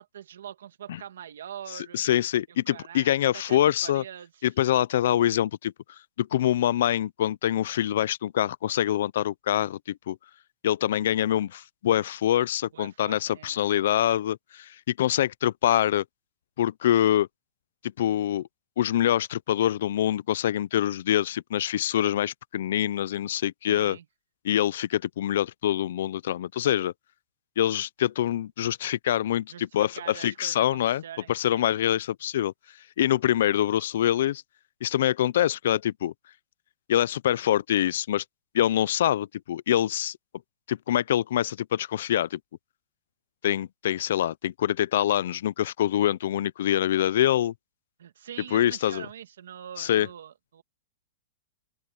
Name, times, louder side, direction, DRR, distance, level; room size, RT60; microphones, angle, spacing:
voice 1, 0.0-2.0 2.7-4.5 12.7-13.6 23.7-24.0 29.5-31.8 48.0-50.6, right 9 dB, 85° right, 2.2 m, -43 dB
voice 2, 1.7-4.0 4.4-5.7 6.2-10.2 10.6-16.0 16.6-17.3 18.0-18.5 18.8-24.0 24.4-26.9 27.6-31.0 31.3-32.5 33.0-34.4 34.8-36.1 36.9-38.2 38.5-40.2 40.7-42.4 43.4-47.5 48.5-49.1 49.8-50.1, left 11 dB, 60° left, 0.4 m, -25 dB
open air
supercardioid pair, 170°, 0 cm